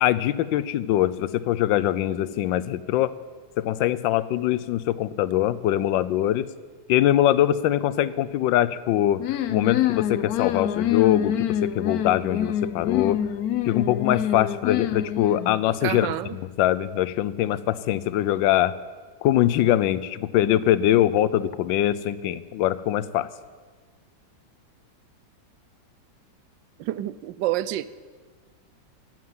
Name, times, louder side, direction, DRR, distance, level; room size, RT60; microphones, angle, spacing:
voice 1, 0.0-3.1 3.6-6.5 6.9-9.2 9.5-13.2 13.6-18.7 19.2-23.3, left 12 dB, 85° left, 17 dB, 1.3 m, -23 dB
sound 1, 9.2-15.6, left 10 dB, 65° left, 1.0 m, -26 dB
voice 2, 15.8-16.4 26.8-27.9, right 14 dB, 80° right, 17 dB, 1.3 m, -28 dB
15.5 x 7.5 x 9.4 m, 1.5 s
omnidirectional pair, 2.0 m